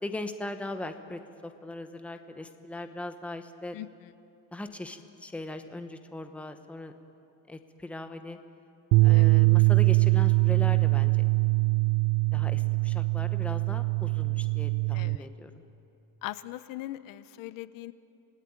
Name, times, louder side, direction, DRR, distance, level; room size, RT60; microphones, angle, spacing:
voice 1, 0.0-3.8 4.5-6.9 7.5-8.4 9.0-11.2 12.3-15.6, left 2 dB, 5° left, 8 dB, 0.9 m, -39 dB
voice 2, 3.7-4.1 9.1-9.4 14.9-15.3 16.2-17.9, left 15 dB, 65° left, 15 dB, 0.8 m, -40 dB
sound 1, 8.9-15.2, right 25 dB, 65° right, 0.7 m, -23 dB
27.0 x 18.5 x 9.6 m, 2.7 s
cardioid pair, 175°, 37 cm